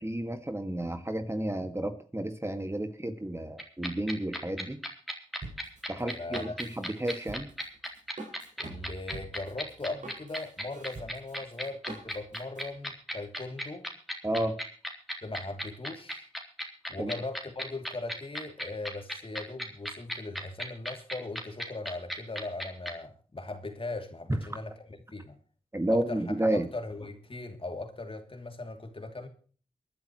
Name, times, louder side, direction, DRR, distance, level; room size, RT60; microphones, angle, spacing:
voice 1, 0.0-4.8 5.9-7.5 14.2-14.6 17.0-17.1 25.7-26.7, right 1 dB, 20° right, 2.0 m, -31 dB
sound 1, 3.6-22.9, equal, ahead, 3.8 m, -35 dB
Drum kit, 5.4-12.6, right 2 dB, 65° right, 6.0 m, -45 dB
voice 2, 6.0-6.6 8.6-13.9 15.2-16.3 16.9-25.4 25.9-29.3, left 2 dB, 40° left, 2.9 m, -39 dB
23.5 x 10.5 x 3.1 m
cardioid pair, 45°, 14 cm